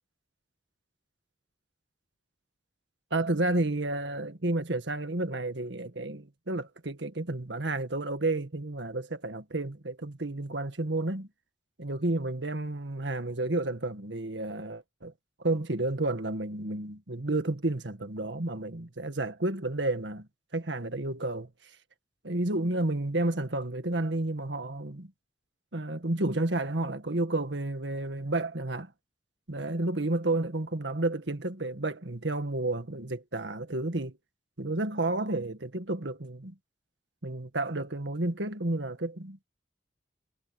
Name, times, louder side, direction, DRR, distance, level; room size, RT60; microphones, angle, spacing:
voice 1, 3.1-11.3 11.8-15.1 15.4-21.5 22.2-25.1 25.7-28.9 29.5-34.2 34.6-36.5 37.2-39.4, right 2 dB, 80° right, 1.8 m, -31 dB
head